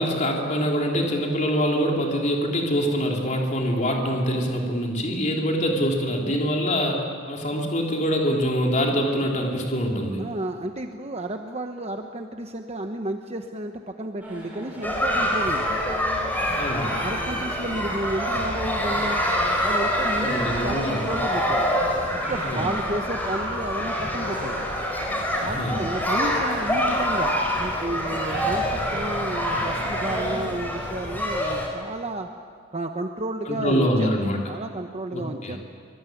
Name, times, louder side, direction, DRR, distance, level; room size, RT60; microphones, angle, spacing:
voice 1, 0.0-10.2 16.6-16.9 20.2-21.0 22.4-22.7 25.4-25.8 33.5-34.4 35.1-35.6, equal, 35° left, 0 dB, 3.7 m, -24 dB
voice 2, 10.2-15.8 17.0-19.2 19.6-21.7 22.1-24.6 25.4-32.3 32.7-34.1 34.5-35.7, right 1 dB, 30° right, 5 dB, 1.1 m, -32 dB
sound 1, 14.2-30.3, right 1 dB, 5° right, 7.3 m, -37 dB
sound 2, 14.8-31.7, equal, 10° left, 4.6 m, -26 dB
25.0 x 23.5 x 9.4 m, 2.1 s
head